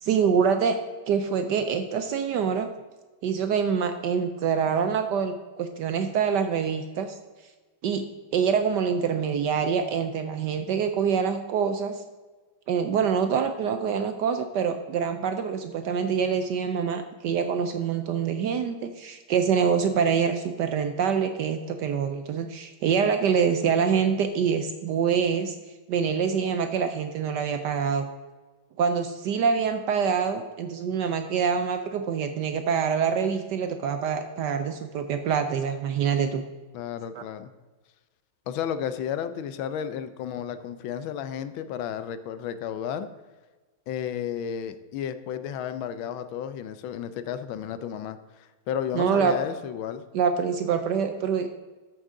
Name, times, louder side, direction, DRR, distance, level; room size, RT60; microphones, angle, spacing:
voice 1, 0.0-0.8 1.1-2.7 3.2-7.1 7.8-8.0 8.3-12.0 12.7-25.5 25.9-28.1 28.8-36.4 37.1-37.2 48.9-49.3 50.1-51.5, right 6 dB, 70° right, 7 dB, 1.0 m, -25 dB
voice 2, 36.7-37.5 38.5-43.1 43.9-50.0, left 9 dB, 80° left, 12 dB, 1.3 m, -32 dB
13.5 x 6.4 x 3.7 m, 1.3 s
omnidirectional pair, 2.3 m